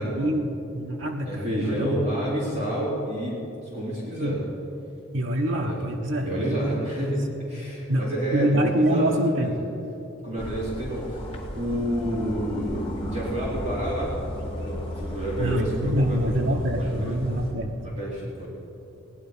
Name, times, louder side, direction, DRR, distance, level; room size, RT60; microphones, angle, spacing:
voice 1, 0.0-2.1 4.1-4.4 5.1-6.3 7.9-9.7 15.4-17.7, equal, 65° right, 1 dB, 1.2 m, -25 dB
voice 2, 1.2-3.4 3.7-4.4 5.6-5.8 6.2-7.2 7.5-9.1 9.4-9.5 10.2-11.2 11.5-14.1 14.5-17.2 17.8-18.5, right 1 dB, 35° right, -7 dB, 3.2 m, -29 dB
sound 1, 10.4-17.5, equal, 25° left, 2.0 m, -34 dB
17.5 x 10.5 x 5.6 m, 3.0 s
head